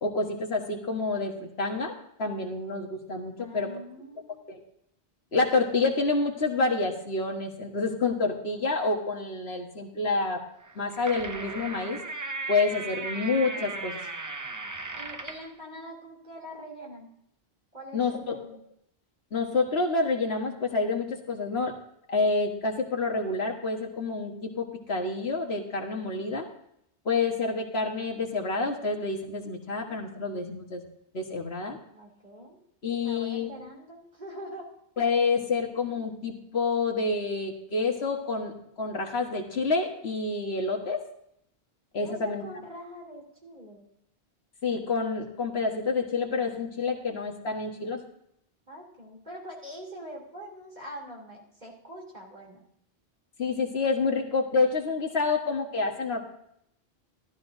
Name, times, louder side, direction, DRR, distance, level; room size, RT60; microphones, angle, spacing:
voice 1, 0.0-3.7 4.5-4.6 5.3-10.4 10.7-12.0 12.5-14.0 17.9-18.4 19.3-21.7 22.1-26.5 27.0-30.9 31.1-31.8 32.8-33.5 35.0-41.0 41.9-42.4 44.6-48.0 53.4-56.2, left 3 dB, 75° left, 2 dB, 1.7 m, -28 dB
voice 2, 3.4-4.5 14.9-17.1 17.7-18.6 31.9-32.6 33.0-34.7 42.0-43.8 48.7-52.6, equal, 45° right, -1 dB, 3.2 m, -43 dB
sound 1, 10.6-15.5, right 3 dB, 25° right, 0.4 m, -36 dB
13.5 x 12.5 x 2.7 m, 0.74 s
omnidirectional pair, 1.1 m